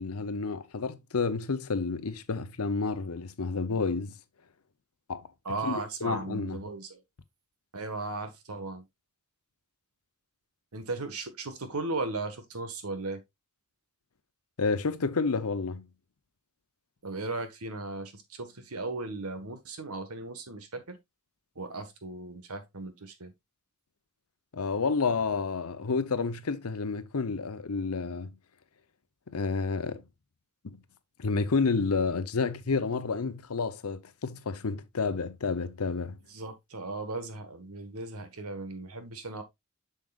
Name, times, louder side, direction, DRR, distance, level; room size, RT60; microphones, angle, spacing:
voice 1, 0.0-4.1 5.1-5.3 5.6-6.6 14.6-15.8 24.5-28.4 29.3-30.0 30.6-30.8 31.2-36.2, left 4 dB, 80° left, 0.8 m, -30 dB
voice 2, 5.4-7.0 7.7-8.8 10.7-13.2 17.0-21.0 21.5-23.3 36.3-39.4, right 3 dB, 85° right, 1.5 m, -36 dB
7.4 x 6.5 x 2.4 m
head